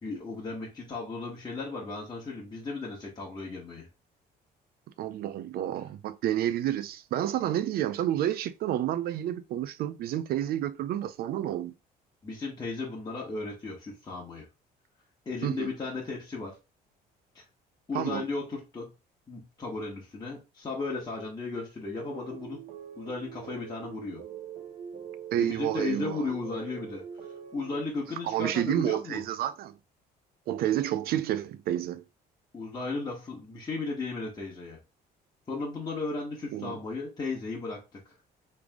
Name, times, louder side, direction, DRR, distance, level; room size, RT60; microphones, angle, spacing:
voice 1, 0.0-3.9 12.2-14.5 15.2-16.5 17.3-17.4 17.9-18.9 19.3-22.6 23.0-24.2 25.4-27.0 27.5-29.2 32.5-34.8 35.5-38.0, left 3 dB, 25° left, 1.4 m, -35 dB
voice 2, 5.0-11.7 15.4-15.7 17.9-18.2 25.3-26.3 28.3-29.7 30.5-32.0 36.5-36.8, right 12 dB, 65° right, 0.4 m, -30 dB
sound 1, 22.0-27.9, right 8 dB, 45° right, 0.8 m, -43 dB
3.5 x 3.3 x 3.6 m
cardioid pair, 110°, 17 cm